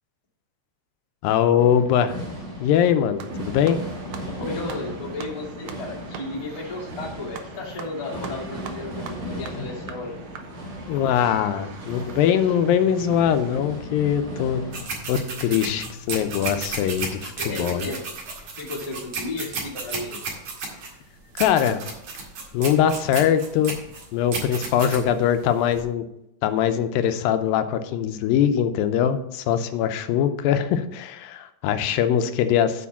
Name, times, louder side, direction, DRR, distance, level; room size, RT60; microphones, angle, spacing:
voice 1, 1.2-2.1 2.6-3.8 10.9-14.6 15.1-17.9 21.4-21.8 22.5-23.7 24.1-26.1 26.4-32.9, left 9 dB, 85° left, 9 dB, 2.4 m, -22 dB
sound 1, 1.6-14.8, equal, 40° right, 2.4 m, -37 dB
sound 2, 3.2-13.6, right 7 dB, 85° right, 1.5 m, -42 dB
voice 2, 4.2-10.2 17.4-20.4, left 2 dB, 20° left, -3 dB, 0.9 m, -34 dB
sound 3, 14.7-25.8, right 3 dB, 55° right, 3.1 m, -33 dB
8.6 x 4.5 x 7.0 m, 0.81 s
omnidirectional pair, 4.1 m